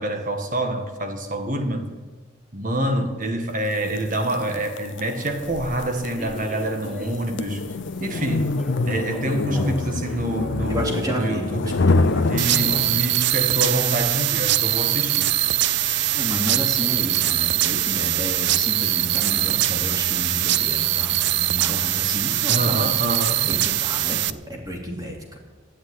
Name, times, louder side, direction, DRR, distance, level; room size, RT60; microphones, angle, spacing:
voice 1, 0.0-1.9 2.5-7.6 8.0-8.5 8.8-11.7 12.3-15.3 22.5-23.6, right 1 dB, 40° right, 5 dB, 1.7 m, -26 dB
sound 1, 3.9-13.3, left 3 dB, 55° left, 0.5 m, -26 dB
Human voice / Subway metro underground, 5.2-13.1, left 1 dB, ahead, 1.0 m, -40 dB
voice 2, 10.7-12.9 16.1-22.9 23.5-25.4, equal, 15° right, 0 dB, 2.6 m, -31 dB
sound 2, 12.4-24.3, right 14 dB, 55° right, 0.5 m, -22 dB
12.0 x 9.6 x 10.0 m, 1.3 s
head